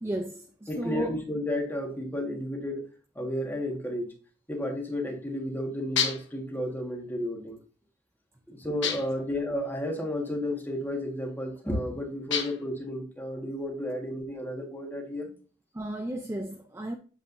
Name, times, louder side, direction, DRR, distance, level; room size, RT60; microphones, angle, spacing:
voice 1, 0.0-1.2 15.7-17.0, right 1 dB, 10° right, 0.5 m, -34 dB
voice 2, 0.7-2.9 3.1-4.1 4.5-7.6 8.5-15.3, left 1 dB, 10° left, 1.6 m, -32 dB
sound 1, 6.0-6.4 8.8-9.3 12.3-12.8, left 7 dB, 60° left, 1.1 m, -30 dB
8.4 x 7.4 x 2.6 m
head